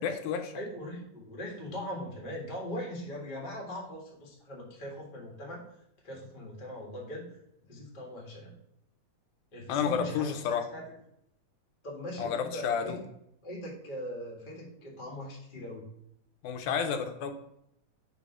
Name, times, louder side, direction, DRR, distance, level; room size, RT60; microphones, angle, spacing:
voice 1, 0.0-0.5 9.7-10.7 12.2-13.0 16.4-17.3, left 7 dB, 85° left, 7 dB, 2.1 m, -30 dB
voice 2, 0.5-5.6 6.0-7.3 7.7-8.6 9.5-10.8 11.8-12.9 13.4-15.9, equal, 30° left, -2 dB, 0.9 m, -40 dB
6.2 x 3.5 x 4.8 m, 0.75 s
omnidirectional pair, 3.4 m